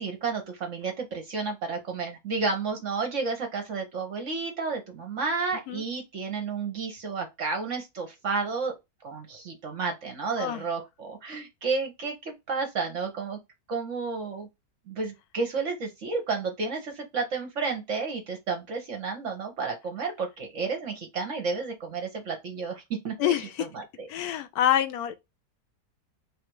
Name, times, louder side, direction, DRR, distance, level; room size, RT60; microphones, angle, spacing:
voice 1, 0.0-8.7 9.0-13.4 13.7-14.5 14.9-23.3 23.7-24.1, right 4 dB, 55° right, 1.0 m, -31 dB
voice 2, 23.2-23.7 24.1-25.1, left 11 dB, 70° left, 1.0 m, -26 dB
3.2 x 2.5 x 4.5 m
omnidirectional pair, 1.9 m